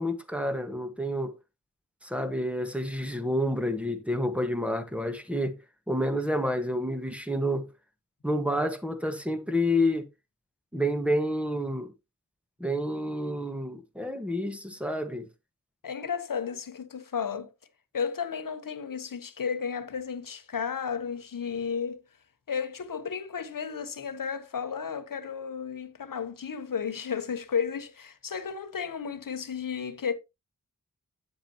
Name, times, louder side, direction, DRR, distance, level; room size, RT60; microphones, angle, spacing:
voice 1, 0.0-1.3 2.0-5.6 5.9-7.7 8.2-10.1 10.7-11.9 12.6-15.3, equal, 5° right, 1.6 m, -29 dB
voice 2, 15.8-17.5 17.9-22.0 22.5-30.1, left 6 dB, 80° left, 1.0 m, -33 dB
8.5 x 7.7 x 3.0 m
cardioid pair, 40°, 33 cm